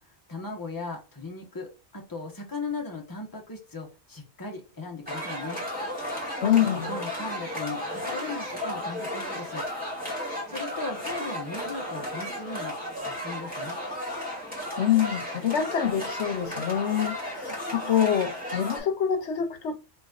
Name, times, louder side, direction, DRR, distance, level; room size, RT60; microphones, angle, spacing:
voice 1, 0.3-5.6 6.4-9.6 10.5-12.8 13.0-13.8, left 3 dB, 20° left, 1.1 m, -37 dB
sound 1, 5.1-18.8, left 1 dB, 5° right, 2.3 m, -34 dB
voice 2, 6.4-6.9 14.8-19.8, left 9 dB, 85° left, 1.1 m, -26 dB
4.5 x 4.0 x 2.4 m
omnidirectional pair, 1.2 m